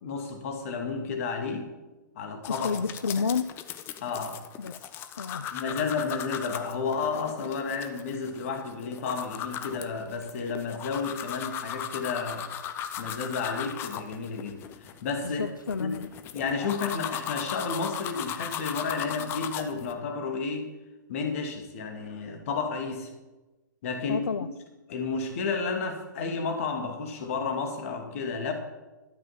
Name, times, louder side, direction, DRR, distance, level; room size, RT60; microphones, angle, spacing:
voice 1, 0.0-1.7 2.2-2.9 4.0-4.4 5.5-12.5 13.0-15.4 15.8-15.9 16.3-20.7 21.1-23.1 23.8-24.2 24.9-28.5, left 4 dB, 45° left, 5 dB, 2.3 m, -32 dB
sound 1, 2.4-19.9, left 9 dB, 20° left, 0.7 m, -37 dB
voice 2, 2.5-3.5 4.6-4.9 5.2-5.5 15.2-16.1 24.1-24.5, left 5 dB, 75° left, 12 dB, 0.5 m, -30 dB
12.5 x 7.4 x 7.2 m, 1.1 s
figure-of-eight pair, 115°, 11 cm